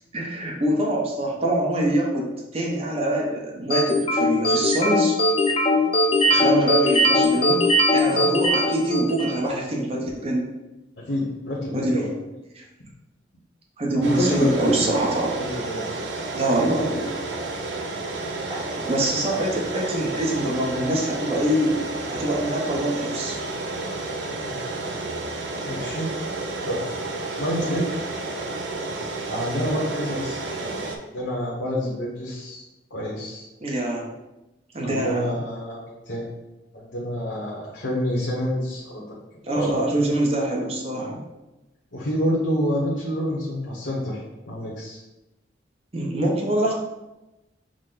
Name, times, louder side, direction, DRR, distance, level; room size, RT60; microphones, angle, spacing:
voice 1, 0.1-5.2 6.2-7.7 7.9-10.5 11.7-12.0 12.5-12.6 13.8-15.4 16.3-17.1 18.5-21.8 22.1-23.4 27.6-27.8 33.6-34.1 34.7-35.3 39.4-41.2 45.9-46.7, right 1 dB, 35° right, -1 dB, 0.8 m, -24 dB
sound 1, 3.7-9.4, left 1 dB, 30° left, 0.5 m, -20 dB
voice 2, 11.0-12.1 13.9-14.8 15.3-15.8 24.4-24.6 25.7-26.1 26.6-26.8 27.4-27.9 29.3-30.8 31.1-32.6 32.9-33.5 34.8-36.4 36.7-39.0 39.5-39.9 41.9-44.2 44.5-45.0, equal, 65° left, -6 dB, 0.9 m, -28 dB
sound 2, 14.0-31.0, right 2 dB, 70° right, 0.6 m, -31 dB
6.2 x 2.1 x 3.8 m, 1.0 s
head